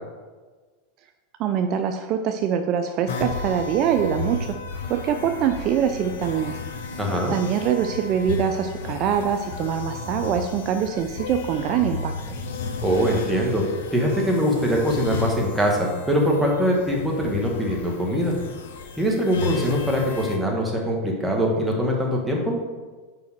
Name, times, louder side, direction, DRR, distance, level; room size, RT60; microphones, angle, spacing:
voice 1, 1.4-4.6 4.9-6.5 7.3-12.1, right 8 dB, 45° right, 7 dB, 0.4 m, -24 dB
sound 1, 3.1-20.4, left 4 dB, 80° left, 0.8 m, -34 dB
voice 2, 7.0-7.3 12.8-13.6 13.9-18.3 19.0-22.6, equal, 5° right, -1 dB, 1.7 m, -22 dB
5.2 x 4.8 x 6.0 m, 1.4 s
hypercardioid pair, 110°, 0 cm